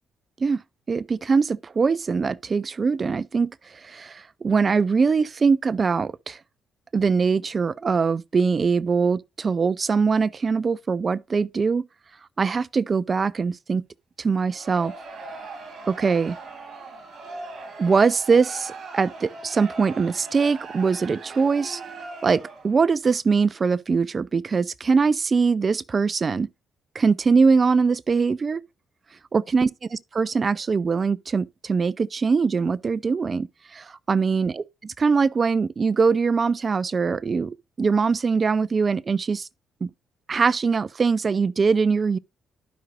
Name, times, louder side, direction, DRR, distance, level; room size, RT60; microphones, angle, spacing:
voice 1, 0.9-3.5 3.8-6.4 6.9-11.8 12.4-13.8 14.2-14.9 15.9-16.4 17.8-21.8 22.2-26.5 27.0-28.6 29.3-29.7 30.2-34.6 35.0-39.5 39.8-39.9 40.3-42.2, right 5 dB, 35° right, 0.4 m, -22 dB
Crowd, 14.4-22.8, right 3 dB, 55° right, 3.1 m, -40 dB
12.0 x 5.3 x 2.5 m
cardioid pair, 90°, 0 cm